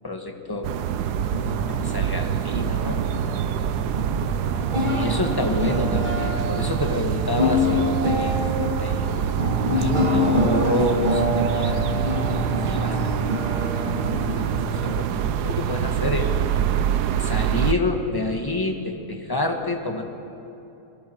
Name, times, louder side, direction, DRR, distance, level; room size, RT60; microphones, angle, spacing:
voice 1, 0.0-0.8 1.7-3.0 4.8-8.4 8.8-9.1 9.8-12.4 12.6-13.5 14.1-16.3 17.2-20.0, left 2 dB, 15° left, 2 dB, 1.7 m, -28 dB
sound 1, 0.6-17.7, right 9 dB, 80° right, 1.2 m, -25 dB
sound 2, 1.1-15.8, left 1 dB, 30° right, 2.3 m, -27 dB
29.5 x 21.5 x 4.7 m, 2.8 s
omnidirectional pair, 1.7 m